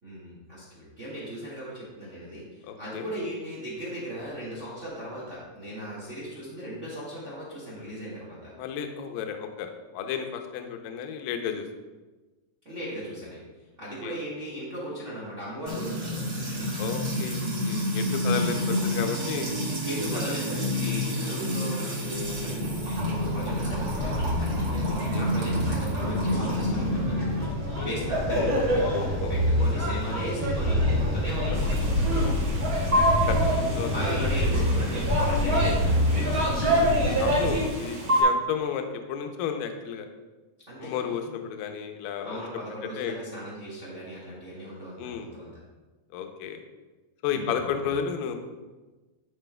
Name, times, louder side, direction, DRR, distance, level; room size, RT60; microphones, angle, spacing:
voice 1, 0.0-8.5 12.6-13.4 13.8-16.4 18.3-18.8 19.8-24.5 25.1-27.3 27.8-28.8 29.3-32.3 33.4-33.5 33.9-36.4 40.7-41.2 42.2-45.5 47.3-47.9, equal, 80° right, -7 dB, 0.6 m, -37 dB
voice 2, 2.6-3.1 8.6-11.6 14.0-14.2 16.8-19.5 20.1-20.4 24.8-25.3 27.8-28.0 29.2-29.3 32.8-32.9 33.3-33.4 33.8-34.2 36.7-40.1 40.8-42.4 43.0-43.1 45.0-45.3 46.1-46.6 47.2-48.4, left 8 dB, 80° left, 5 dB, 2.1 m, -33 dB
Music / Water tap faucet / Trickle dribble, 15.7-27.4, equal, 60° right, 1.0 m, -29 dB
sound 1, 22.2-37.6, equal, 20° right, 1.8 m, -26 dB
sound 2, 31.5-38.2, left 1 dB, 45° right, 2.0 m, -31 dB
12.5 x 4.7 x 2.2 m, 1.2 s
omnidirectional pair, 4.5 m